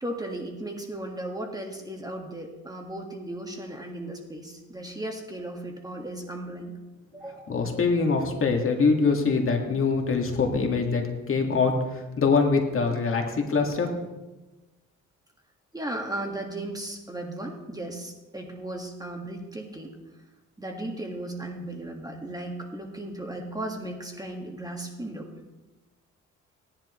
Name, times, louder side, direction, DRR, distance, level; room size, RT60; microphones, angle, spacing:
voice 1, 0.0-6.7 7.1-7.5 15.7-20.0 20.6-25.3, right 1 dB, 10° right, 1 dB, 1.8 m, -36 dB
voice 2, 7.5-14.0, left 4 dB, 45° left, 3 dB, 2.0 m, -24 dB
17.5 x 10.5 x 3.2 m, 1.1 s
cardioid pair, 90°, 30 cm